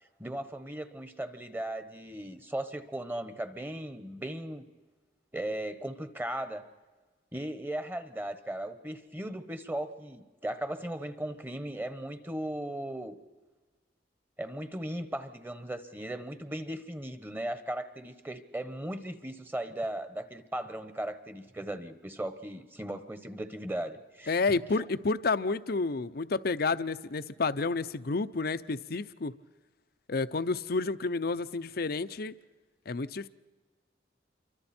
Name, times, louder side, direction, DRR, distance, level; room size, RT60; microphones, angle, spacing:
voice 1, 0.2-4.6 5.3-6.7 7.3-13.2 14.4-24.6, right 1 dB, 10° right, 10 dB, 1.2 m, -37 dB
voice 2, 24.3-29.3 30.1-32.3 32.9-33.3, left 3 dB, 60° left, 13 dB, 0.7 m, -30 dB
28.0 x 24.5 x 4.4 m, 1.3 s
head